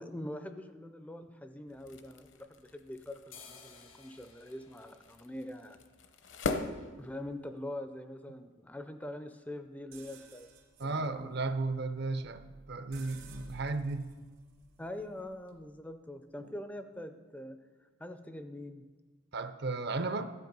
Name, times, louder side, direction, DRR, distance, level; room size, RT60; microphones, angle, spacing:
voice 1, 0.0-5.8 7.0-10.5 10.8-11.3 14.8-17.6 18.0-18.9, left 1 dB, 5° left, 9 dB, 0.4 m, -44 dB
sound 1, 1.7-7.7, left 3 dB, 60° left, 0.8 m, -42 dB
sound 2, 2.2-2.8 3.1-10.8 11.2-11.3 11.5-12.1 12.4-12.6 12.9-13.1 13.4-14.1 14.4-14.6 15.1-15.2 15.5-15.6, left 5 dB, 80° left, 1.6 m, -60 dB
sound 3, 9.9-15.7, right 2 dB, 75° right, 2.0 m, -55 dB
voice 2, 10.8-12.4 12.7-14.1 19.3-20.2, right 3 dB, 50° right, 10 dB, 0.6 m, -34 dB
12.0 x 8.1 x 5.3 m, 1.3 s
head